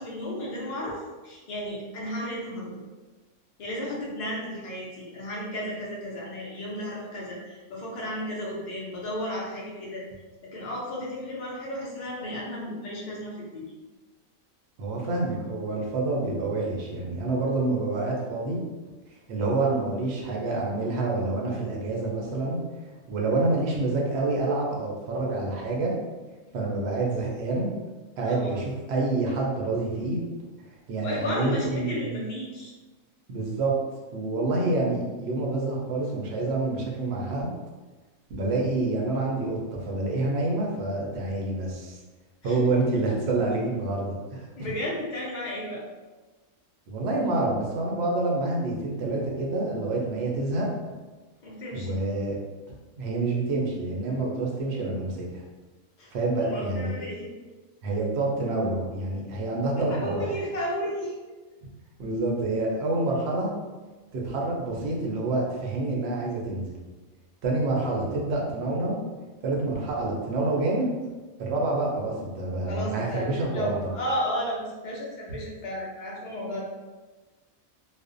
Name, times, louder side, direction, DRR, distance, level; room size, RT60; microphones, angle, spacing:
voice 1, 0.0-2.8 3.6-10.0 10.4-13.7 28.2-28.5 31.0-32.7 42.4-42.6 44.6-45.8 51.4-52.0 56.0-56.1 56.4-57.3 59.9-61.1 72.7-76.6, equal, 70° left, -4 dB, 0.4 m, -33 dB
voice 2, 14.8-18.6 19.3-22.6 23.1-25.9 26.5-27.7 28.2-30.2 30.9-32.2 33.3-33.7 34.1-37.5 38.3-42.0 42.4-44.7 46.9-50.7 51.7-52.4 53.0-55.4 56.1-56.9 57.8-60.4 62.0-63.5 64.1-66.6 67.4-69.0 69.4-70.9 71.4-73.7, right 2 dB, 65° right, -2 dB, 0.7 m, -27 dB
2.4 x 2.1 x 2.4 m, 1.2 s
omnidirectional pair, 1.5 m